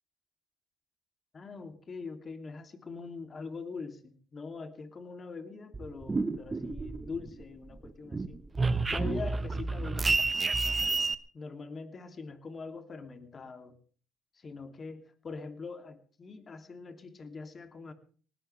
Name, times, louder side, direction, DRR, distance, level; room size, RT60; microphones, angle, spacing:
voice 1, 1.3-8.4 8.9-10.2 11.3-13.7 14.3-17.9, left 4 dB, 35° left, 8 dB, 2.8 m, -43 dB
sound 1, 5.7-7.4 7.8-11.1, right 3 dB, 25° right, 1.2 m, -30 dB
20.5 x 19.0 x 3.4 m, 0.43 s
cardioid pair, 90°, 0 cm